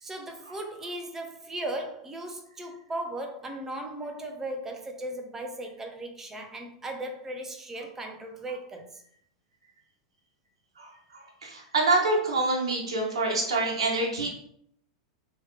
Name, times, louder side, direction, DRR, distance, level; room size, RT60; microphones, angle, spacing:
voice 1, 0.0-9.0, right 1 dB, 15° right, 0.7 m, -37 dB
voice 2, 11.1-14.3, right 2 dB, 80° right, 1.0 m, -26 dB
3.2 x 3.1 x 3.2 m
hypercardioid pair, 105°, 3 cm